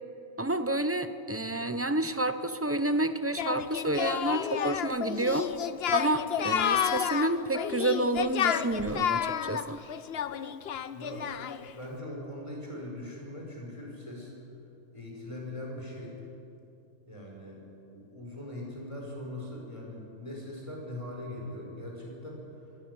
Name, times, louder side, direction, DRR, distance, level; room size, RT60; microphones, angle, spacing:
voice 1, 0.4-5.5 5.9-9.8, right 1 dB, 15° right, 10 dB, 0.6 m, -29 dB
Singing, 3.4-11.7, left 9 dB, 55° left, 0.8 m, -30 dB
voice 2, 10.9-11.4 11.7-14.3 14.9-16.1 17.1-17.6 17.9-22.4, left 1 dB, 20° left, -2 dB, 5.3 m, -41 dB
24.5 x 13.0 x 9.5 m, 2.7 s
omnidirectional pair, 1.4 m